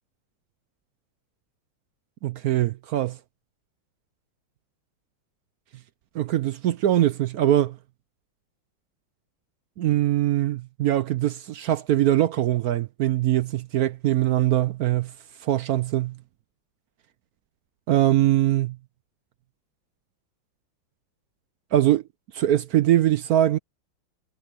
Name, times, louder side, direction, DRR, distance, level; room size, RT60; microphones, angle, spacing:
voice 1, 2.2-3.2 6.1-7.8 9.8-15.1 15.4-16.2 17.9-18.8 21.7-22.0 22.3-23.6, right 12 dB, 70° right, 0.9 m, -22 dB
omnidirectional pair, 2.2 m